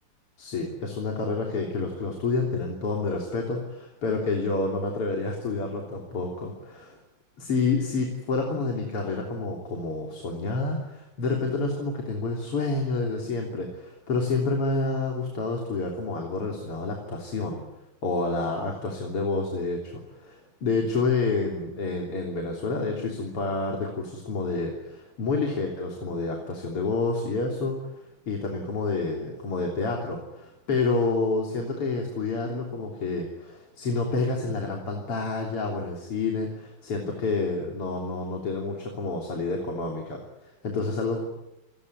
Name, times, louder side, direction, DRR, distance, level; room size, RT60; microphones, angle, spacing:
voice 1, 0.4-7.0 7.4-17.6 18.0-41.2, left 3 dB, 90° left, 1 dB, 4.3 m, -29 dB
28.5 x 19.0 x 9.8 m, 0.95 s
omnidirectional pair, 2.4 m